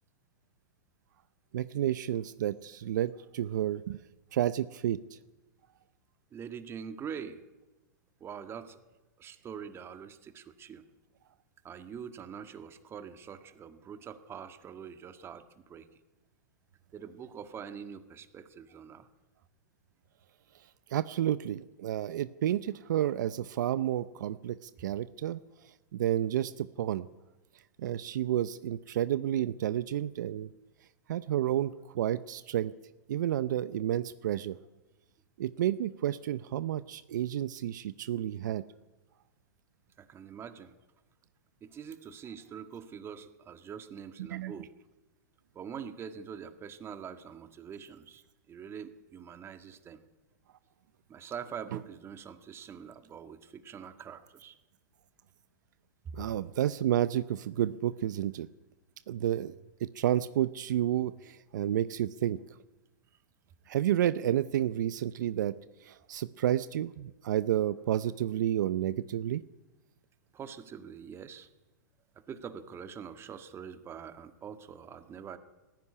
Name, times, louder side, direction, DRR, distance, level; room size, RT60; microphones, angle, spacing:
voice 1, 1.5-4.0 4.3-5.2 20.9-25.4 25.9-27.0 27.8-30.5 31.1-32.7 33.1-34.6 35.4-38.6 44.3-44.5 56.1-58.5 59.1-59.6 59.8-62.4 63.7-65.6 65.8-69.4, right 11 dB, 70° right, 15 dB, 0.7 m, -30 dB
voice 2, 6.3-7.4 8.2-8.8 9.2-10.8 11.6-16.0 16.9-19.1 40.0-40.8 41.6-44.7 45.5-50.0 51.1-54.6 70.3-71.5 72.3-75.4, right 7 dB, 25° right, 9 dB, 1.7 m, -44 dB
18.5 x 15.0 x 9.8 m, 1.1 s
hypercardioid pair, 120°, 10 cm